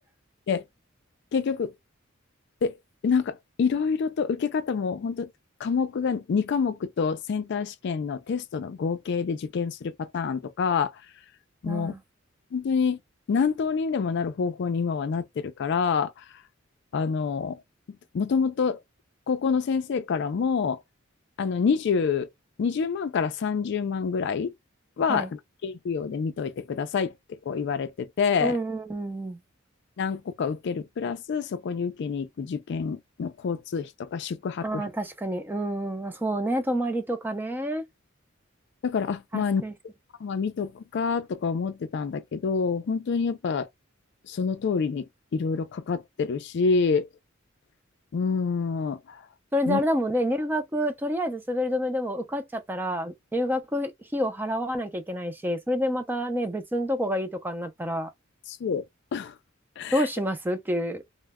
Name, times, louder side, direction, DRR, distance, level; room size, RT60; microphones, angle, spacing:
voice 1, 1.3-1.7 2.6-2.8 3.0-5.3 5.6-10.9 11.6-11.9 12.5-13.0 13.3-16.1 16.9-17.6 18.1-18.8 19.3-20.8 21.4-22.3 22.6-24.5 25.0-28.6 30.0-34.9 38.8-39.6 40.2-43.7 44.3-45.1 45.3-47.1 48.1-49.2 49.7-49.8 58.5-58.8 59.1-59.3 59.8-60.1, left 5 dB, 60° left, 0.4 m, -27 dB
voice 2, 11.6-12.0 25.1-25.3 28.4-29.4 34.6-37.8 39.3-39.7 49.5-58.1 59.9-61.0, equal, 10° right, 0.4 m, -28 dB
2.1 x 2.1 x 3.4 m
head